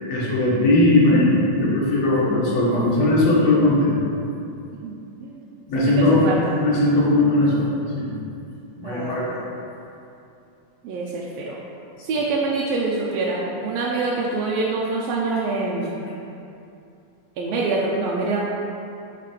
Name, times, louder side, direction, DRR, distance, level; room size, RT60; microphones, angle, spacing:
voice 1, 0.1-4.0 5.7-6.2 6.6-7.7 8.0-8.1 8.8-9.4, left 2 dB, 65° left, -5 dB, 2.4 m, -19 dB
voice 2, 4.7-5.4 6.0-6.5 8.8-9.4 10.8-11.6 12.0-16.0 17.4-18.4, right 3 dB, 75° right, -4 dB, 1.6 m, -25 dB
7.3 x 3.7 x 5.1 m, 2.6 s
omnidirectional pair, 3.3 m